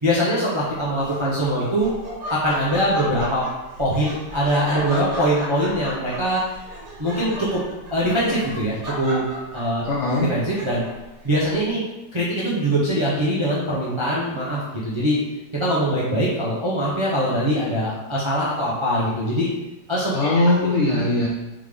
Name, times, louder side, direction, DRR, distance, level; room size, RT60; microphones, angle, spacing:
voice 1, 0.0-1.9 2.3-3.4 3.8-6.4 7.0-7.6 7.9-9.2 9.5-9.8 10.2-10.8 11.2-11.8 12.1-15.2 15.5-19.5 19.9-20.3 20.9-21.0, equal, 45° right, -7 dB, 0.3 m, -22 dB
Laughter, 1.0-11.1, equal, 65° right, 1.8 m, -34 dB
voice 2, 9.8-10.3 20.1-21.3, left 2 dB, 75° left, -4 dB, 0.6 m, -20 dB
3.7 x 3.6 x 3.3 m, 1.0 s
omnidirectional pair, 1.9 m